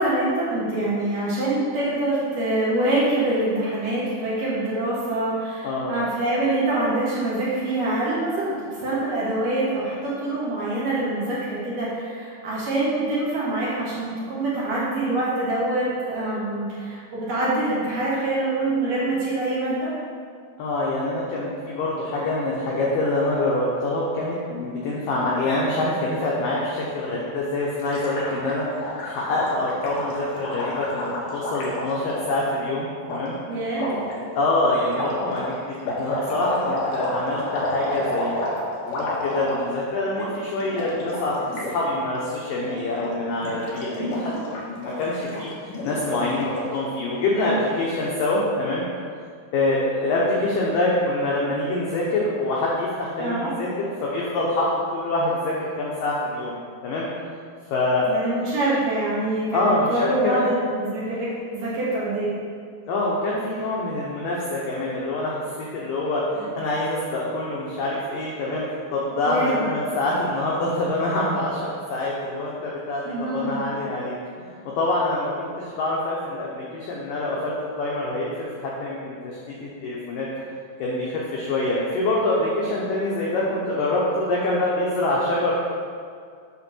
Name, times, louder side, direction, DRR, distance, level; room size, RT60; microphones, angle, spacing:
voice 1, 0.0-19.9 33.5-34.0 43.9-44.3 53.2-53.5 58.1-62.3 69.2-69.6 73.0-73.6, right 2 dB, 60° right, -8 dB, 2.5 m, -25 dB
voice 2, 5.6-6.0 20.6-33.3 34.3-38.5 38.8-41.4 41.7-48.8 49.5-53.7 54.0-56.6 56.8-57.1 57.7-58.1 59.5-60.4 62.9-68.6 68.9-80.3 80.8-85.5, left 2 dB, 85° left, -4 dB, 1.9 m, -25 dB
Gurgling, 27.8-32.4 33.1-33.2 33.7-34.1 34.9-39.8 40.1-40.3 40.6-41.7 42.0-42.2 42.6-43.1 43.4-46.8, left 1 dB, 65° left, 3.0 m, -30 dB
8.9 x 3.7 x 6.1 m, 2.2 s
omnidirectional pair, 5.3 m